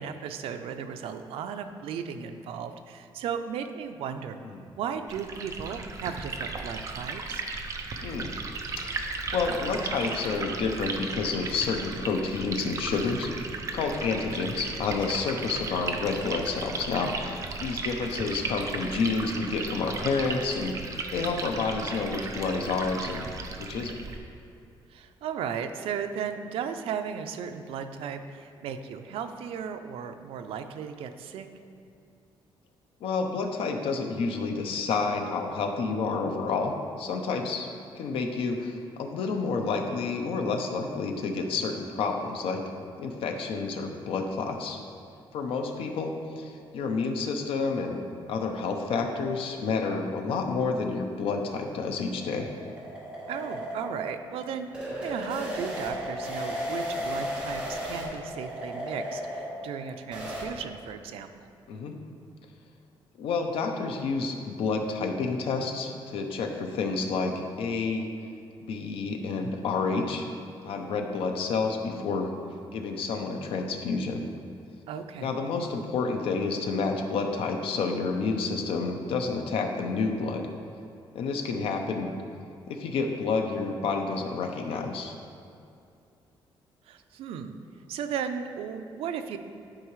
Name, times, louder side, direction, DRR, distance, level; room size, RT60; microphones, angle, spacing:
voice 1, 0.0-4.4 4.8-7.4 24.9-31.5 53.3-54.7 55.0-61.3 74.9-75.3 86.9-87.5 87.9-89.4, right 7 dB, 85° right, 8 dB, 0.5 m, -35 dB
Liquid, 5.1-24.2, right 4 dB, 35° right, 0.5 m, -36 dB
voice 2, 8.8-13.3 13.7-20.7 21.1-23.3 23.6-24.0 33.0-37.7 38.0-42.6 43.0-44.8 45.3-48.0 48.3-52.5 61.7-62.0 63.2-68.1 68.7-70.3 70.6-72.3 72.7-74.2 75.2-80.5 81.1-82.1 82.7-85.1, left 4 dB, 75° left, 4 dB, 0.7 m, -29 dB
sound 1, 51.7-60.4, equal, 10° right, 1.4 m, -35 dB
11.5 x 4.8 x 3.1 m, 2.5 s
cardioid pair, 175°, 9 cm